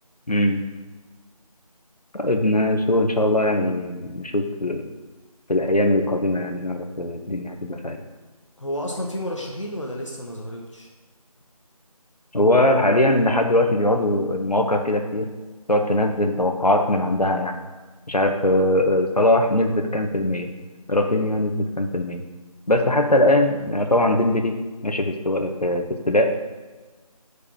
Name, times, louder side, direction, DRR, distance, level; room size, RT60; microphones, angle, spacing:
voice 1, 0.3-0.7 2.1-4.8 5.5-8.0 12.3-15.3 15.7-17.6 18.1-20.5 20.9-22.2 22.7-24.5 24.8-26.4, left 1 dB, 85° left, 5 dB, 1.2 m, -21 dB
voice 2, 8.6-10.9, equal, 55° left, 0 dB, 1.1 m, -31 dB
6.8 x 4.9 x 7.0 m, 1.3 s
figure-of-eight pair, 170°, 19 cm